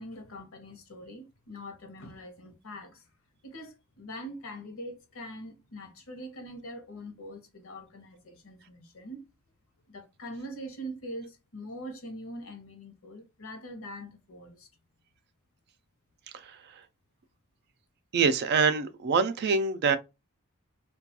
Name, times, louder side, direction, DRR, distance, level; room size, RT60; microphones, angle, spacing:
voice 1, 0.0-3.1 3.4-9.3 9.9-14.7, equal, 65° left, 0.8 m, -43 dB
voice 2, 18.1-20.0, right 5 dB, 50° right, 0.3 m, -25 dB
2.3 x 2.3 x 2.7 m
head